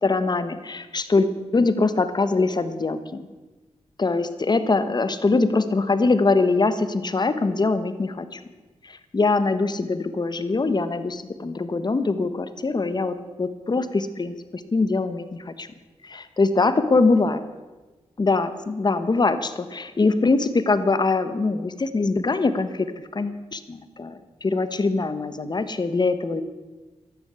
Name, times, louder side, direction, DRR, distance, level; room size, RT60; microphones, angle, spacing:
voice 1, 0.0-1.3 1.5-3.2 4.0-8.4 8.8-14.3 14.7-15.7 16.0-17.4 18.2-22.9 23.1-26.4, left 3 dB, 35° left, 12 dB, 1.4 m, -23 dB
13.5 x 11.5 x 8.3 m, 1.2 s
cardioid pair, 70°, 12 cm